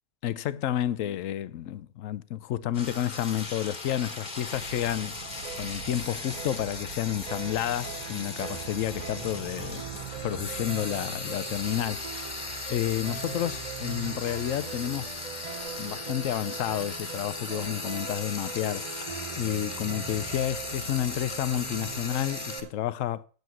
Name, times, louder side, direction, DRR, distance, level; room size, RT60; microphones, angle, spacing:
voice 1, 0.2-5.2 5.6-9.8 10.2-12.4 12.7-15.2 15.8-19.1 19.4-23.2, left 12 dB, 75° left, 1.0 m, -30 dB
Frying (food), 2.7-22.6, left 3 dB, 35° left, 1.4 m, -38 dB
sound 1, 4.5-11.1, right 12 dB, 90° right, 1.1 m, -45 dB
sound 2, 5.2-22.7, right 7 dB, 40° right, 0.6 m, -41 dB
8.0 x 7.9 x 7.6 m
omnidirectional pair, 1.4 m